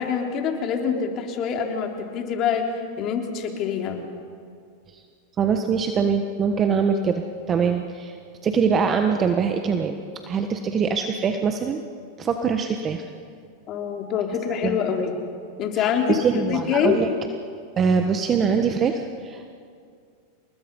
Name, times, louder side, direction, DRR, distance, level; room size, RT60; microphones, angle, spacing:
voice 1, 0.0-2.7 3.0-4.0 13.7-15.1 15.6-16.1 16.3-17.0, left 7 dB, 45° left, 2 dB, 3.6 m, -25 dB
voice 2, 5.4-8.2 8.4-10.0 10.3-11.8 12.2-13.1 14.6-14.8 15.8-17.1 17.8-19.6, right 6 dB, 30° right, 6 dB, 1.4 m, -23 dB
28.5 x 20.5 x 5.5 m, 2.3 s
hypercardioid pair, 105°, 0 cm